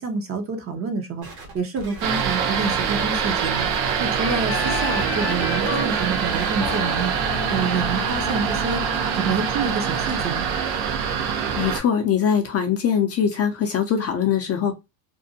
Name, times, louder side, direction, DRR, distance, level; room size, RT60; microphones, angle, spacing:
voice 1, 0.0-8.8 9.2-10.5, right 4 dB, 30° right, 0.6 m, -28 dB
sound 1, 1.2-3.9 4.5-6.1 6.3-6.8 8.0-10.3 10.9-11.0, right 1 dB, 55° right, 1.3 m, -41 dB
sound 2, 2.0-11.8, right 7 dB, 70° right, 0.7 m, -24 dB
Wind instrument woodwind instrument, 4.2-9.6, left 9 dB, 75° left, 0.7 m, -33 dB
voice 2, 11.5-14.8, left 8 dB, 35° left, 0.4 m, -22 dB
2.6 x 2.1 x 2.6 m
cardioid pair, 120°, 44 cm